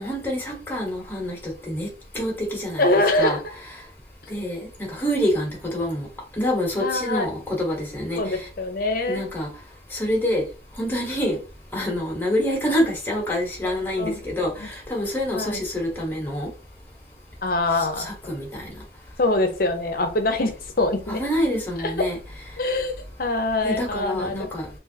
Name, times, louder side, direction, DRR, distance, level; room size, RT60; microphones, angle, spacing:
voice 1, 0.0-1.9 2.1-2.9 3.2-3.4 3.7-3.8 4.3-6.1 6.4-8.5 9.1-9.5 9.9-10.4 10.8-11.4 11.7-16.5 17.8-18.7 21.1-22.2 23.6-24.7, equal, 10° left, -2 dB, 1.3 m, -26 dB
voice 2, 2.8-3.4 6.8-7.3 8.1-9.3 13.6-14.2 14.6-14.7 15.3-15.6 17.4-18.1 19.2-21.2 22.6-22.9 23.2-24.5, left 2 dB, 55° left, 6 dB, 0.7 m, -24 dB
3.5 x 2.6 x 2.8 m, 0.34 s
head